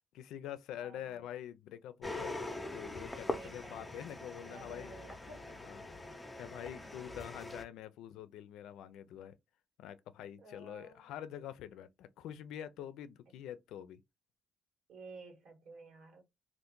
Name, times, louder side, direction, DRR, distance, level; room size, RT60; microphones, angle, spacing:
voice 1, 0.1-2.4 2.7-4.9 5.6-5.8 6.3-9.3 9.8-14.0, left 10 dB, 90° left, 0.4 m, -46 dB
voice 2, 0.8-1.2 3.2-3.9 4.4-5.7 6.2-7.1 10.4-11.1 14.9-16.2, right 3 dB, 80° right, 1.4 m, -54 dB
sound 1, 2.0-7.6, left 2 dB, 15° left, 0.6 m, -43 dB
2.6 x 2.5 x 3.6 m
cardioid pair, 90°, 0 cm